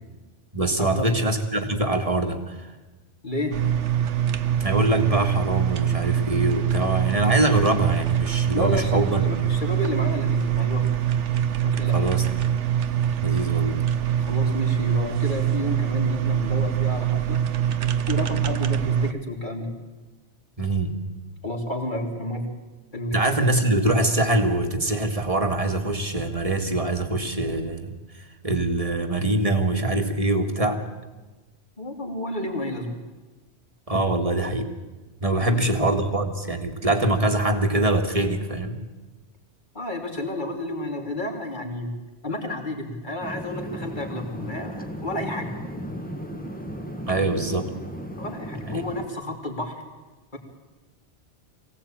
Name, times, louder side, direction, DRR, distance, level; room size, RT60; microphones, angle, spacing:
voice 1, 0.5-2.7 4.6-9.5 11.9-12.3 13.2-13.8 20.6-21.0 23.1-28.0 28.4-30.8 33.9-34.7 35.2-38.7 47.1-47.7 48.7-48.8, right 2 dB, 30° right, 5 dB, 2.0 m, -24 dB
voice 2, 3.2-3.6 8.5-10.9 11.6-12.1 14.2-17.4 18.1-19.7 21.4-22.5 22.9-23.2 31.8-33.0 35.4-35.7 39.7-41.9 42.2-45.5 48.2-49.8 50.3-50.4, left 1 dB, 40° left, 2 dB, 3.2 m, -30 dB
sound 1, 3.5-19.1, right 9 dB, 80° right, 1.3 m, -24 dB
sound 2, 43.2-49.1, equal, 5° left, 1.7 m, -35 dB
23.5 x 17.0 x 8.9 m, 1.2 s
omnidirectional pair, 1.2 m